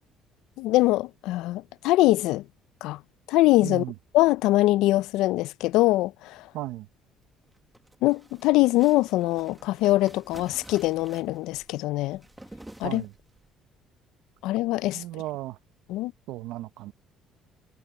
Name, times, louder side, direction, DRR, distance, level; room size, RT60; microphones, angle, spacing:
voice 1, 0.6-2.4 2.8-3.0 3.3-3.8 4.1-6.4 8.0-12.2 12.8-13.0 14.4-15.0 15.9-16.1, left 18 dB, 85° left, 0.4 m, -23 dB
voice 2, 3.6-4.0 6.5-6.9 12.8-13.1 14.9-15.6 16.3-16.9, right 16 dB, 80° right, 0.7 m, -35 dB
sound 1, 7.4-13.5, right 1 dB, 5° right, 1.6 m, -50 dB
cardioid pair, 135°, 0 cm